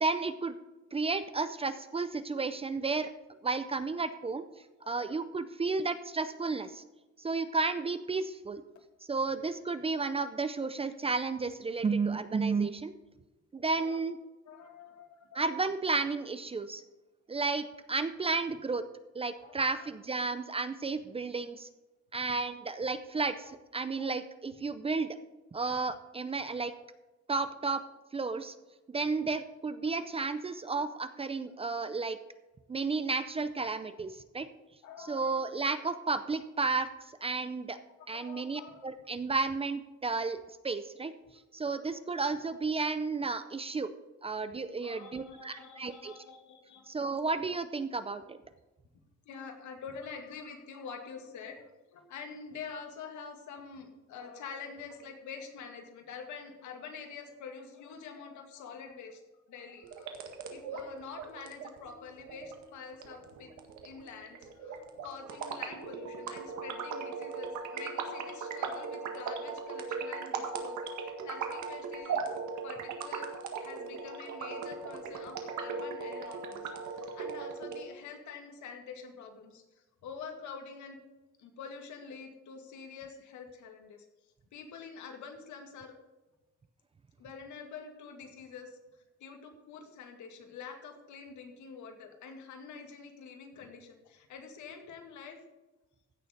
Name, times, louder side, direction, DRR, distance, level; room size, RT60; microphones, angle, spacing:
voice 1, 0.0-0.6 0.9-3.1 3.4-4.4 4.9-6.8 7.2-8.6 9.1-12.9 13.5-14.2 15.3-16.8 17.3-18.8 19.2-21.7 22.1-25.2 25.5-26.7 27.3-27.9 28.1-28.5 28.9-32.2 32.7-34.5 35.1-36.9 37.2-37.8 38.1-40.4 40.6-41.1 41.5-43.9 44.2-46.1 46.9-48.4, right 4 dB, 20° right, 12 dB, 0.5 m, -32 dB
voice 2, 4.8-5.2 13.8-14.0 14.5-15.4 19.4-19.9 23.9-24.1 29.8-30.0 34.8-35.5 38.0-38.8 44.8-47.0 49.3-59.2 59.5-60.2 60.5-63.5 63.8-72.3 72.6-73.3 73.6-81.0 81.4-84.0 84.5-85.9 87.2-88.8 89.2-95.4, left 5 dB, 80° left, 4 dB, 2.3 m, -47 dB
sound 1, 59.8-77.8, right 5 dB, 75° right, 1.8 m, -38 dB
15.5 x 6.8 x 5.2 m, 1.1 s
cardioid pair, 155°, 29 cm